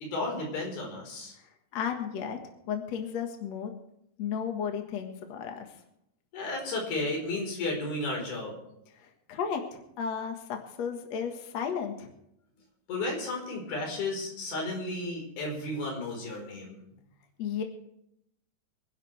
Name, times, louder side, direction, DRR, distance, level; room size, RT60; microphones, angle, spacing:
voice 1, 0.1-1.3 6.3-8.6 12.9-16.8, left 2 dB, 75° left, 0 dB, 6.3 m, -33 dB
voice 2, 1.7-2.4 2.7-3.7 4.2-5.7 9.0-12.1 17.4-17.6, left 7 dB, 55° left, 4 dB, 2.3 m, -34 dB
26.0 x 11.0 x 3.4 m, 0.77 s
omnidirectional pair, 4.5 m